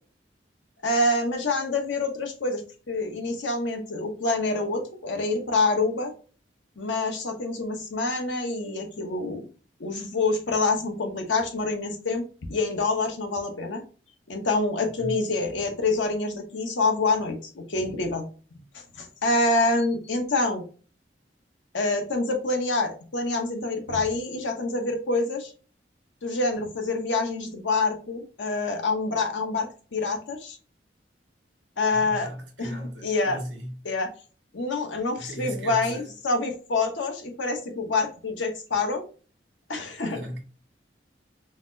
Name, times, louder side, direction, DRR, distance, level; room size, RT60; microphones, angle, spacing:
voice 1, 0.8-6.1 6.8-9.5 9.8-12.2 12.5-13.8 14.3-18.2 19.0-20.6 21.7-25.5 26.2-30.6 31.8-32.3 32.6-33.4 33.8-34.1 34.5-39.1 39.7-40.2, left 3 dB, 85° left, 0.8 m, -26 dB
voice 2, 31.9-33.9 35.2-36.1 40.1-40.4, equal, 90° right, 1.2 m, -37 dB
4.0 x 2.0 x 2.5 m
head